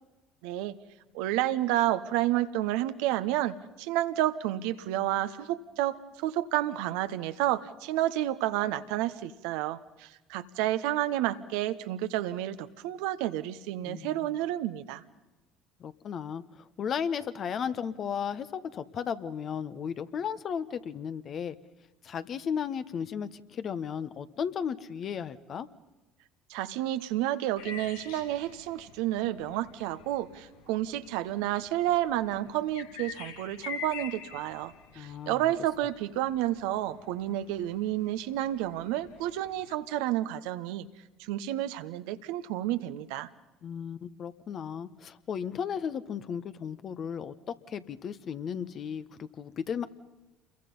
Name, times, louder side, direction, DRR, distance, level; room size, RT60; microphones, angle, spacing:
voice 1, 0.4-0.8 1.1-15.0 26.5-40.9 41.2-43.3, right 14 dB, 70° right, 11 dB, 1.1 m, -30 dB
voice 2, 13.8-14.3 15.8-21.5 22.0-25.7 34.9-35.5 43.6-49.8, left 7 dB, 45° left, 12 dB, 1.3 m, -35 dB
sound 1, 27.6-39.7, left 7 dB, 80° left, 2.0 m, -47 dB
28.5 x 22.5 x 5.6 m, 1.1 s
hypercardioid pair, 65°, 0 cm